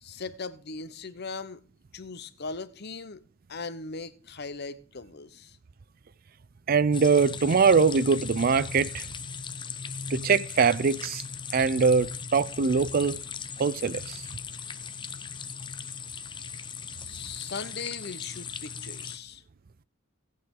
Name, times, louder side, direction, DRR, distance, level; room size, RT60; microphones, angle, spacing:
voice 1, 0.0-1.6 1.9-3.2 3.5-5.6 17.0-19.4, left 4 dB, 55° left, 0.9 m, -39 dB
voice 2, 6.7-9.1 10.1-11.2 11.5-13.2 13.6-14.2, right 5 dB, 45° right, 0.5 m, -23 dB
sound 1, 6.9-19.2, left 6 dB, 25° left, 0.7 m, -38 dB
18.0 x 8.8 x 3.8 m
head